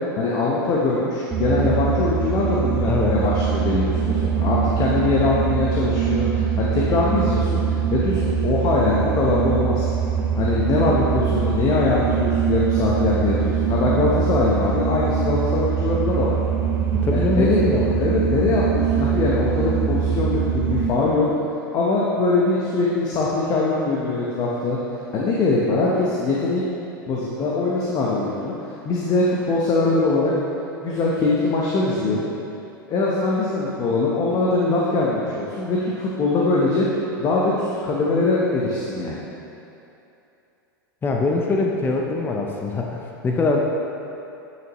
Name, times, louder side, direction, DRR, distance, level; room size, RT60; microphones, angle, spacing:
voice 1, 0.2-9.9 10.4-16.4 17.1-17.6 18.0-21.3 21.7-24.8 25.1-26.6 27.1-28.5 28.8-30.3 30.8-32.3 32.9-36.9 37.2-39.2, left 3 dB, 35° left, -5 dB, 1.0 m, -22 dB
sound 1, 1.3-20.8, right 7 dB, 20° right, 1.4 m, -23 dB
voice 2, 2.8-3.2 16.9-17.9 41.0-43.6, left 3 dB, 15° left, 0 dB, 0.6 m, -23 dB
8.7 x 6.4 x 3.1 m, 2.8 s
hypercardioid pair, 100°, 12 cm